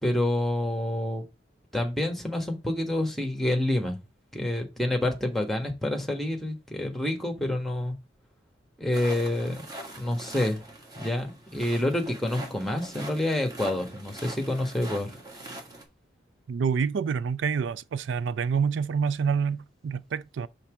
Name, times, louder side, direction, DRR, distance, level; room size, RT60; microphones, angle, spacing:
voice 1, 0.0-1.3 1.7-4.0 4.3-7.9 8.8-9.6 10.0-10.7 10.9-15.1, left 1 dB, ahead, 1.4 m, -28 dB
sound 1, 8.9-15.8, right 2 dB, 20° right, 1.7 m, -42 dB
voice 2, 16.5-20.5, right 6 dB, 90° right, 0.4 m, -27 dB
5.7 x 3.8 x 6.0 m
head